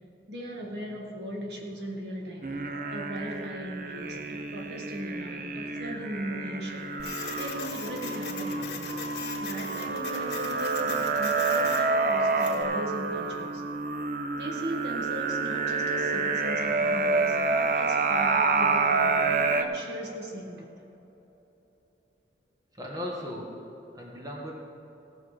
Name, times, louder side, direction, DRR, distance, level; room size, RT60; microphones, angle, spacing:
voice 1, 0.3-2.5 2.9-6.9 7.3-9.0 9.4-13.6 14.3-20.7, equal, 75° right, 0 dB, 1.8 m, -38 dB
sound 1, 2.4-19.6, right 4 dB, 50° right, 0.7 m, -28 dB
Printer, 7.0-12.6, left 5 dB, 65° left, 1.7 m, -40 dB
voice 2, 22.7-23.5 23.9-24.5, equal, 20° right, -2 dB, 1.5 m, -37 dB
17.0 x 6.8 x 5.0 m, 3.0 s
head